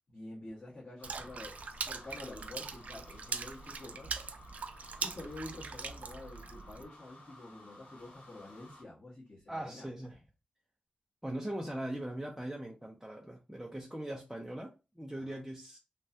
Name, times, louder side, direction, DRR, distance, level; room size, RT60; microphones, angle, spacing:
voice 1, 0.1-4.1 5.0-9.9 15.2-15.4, left 2 dB, 45° left, 1.4 m, -48 dB
sound 1, 1.0-8.8, left 2 dB, 85° left, 1.1 m, -56 dB
Water / Splash splatter, 1.0-6.8, right 5 dB, 70° right, 0.3 m, -41 dB
voice 2, 9.5-10.2 11.2-15.8, right 1 dB, 5° right, 0.5 m, -40 dB
3.2 x 2.2 x 2.7 m
wide cardioid pair, 95°, 3 cm